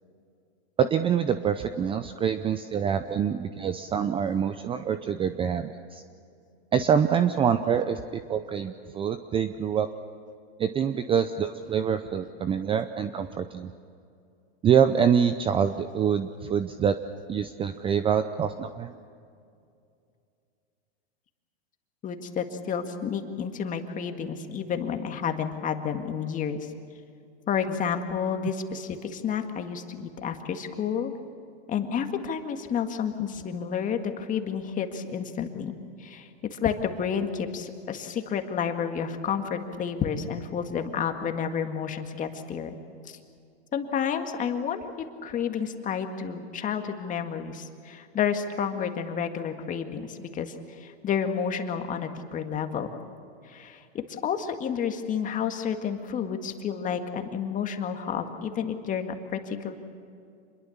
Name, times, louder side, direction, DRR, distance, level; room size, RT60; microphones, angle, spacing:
voice 1, 0.8-6.0 6.7-9.9 10.6-13.7 14.6-17.0 17.3-18.9, right 8 dB, 15° right, 10 dB, 0.6 m, -25 dB
voice 2, 22.0-26.7 27.5-31.1 31.7-42.7 43.1-43.2 43.7-52.9 53.4-59.7, left 7 dB, 25° left, 6 dB, 1.9 m, -30 dB
27.0 x 21.5 x 7.2 m, 2.4 s
hypercardioid pair, 135°, 33 cm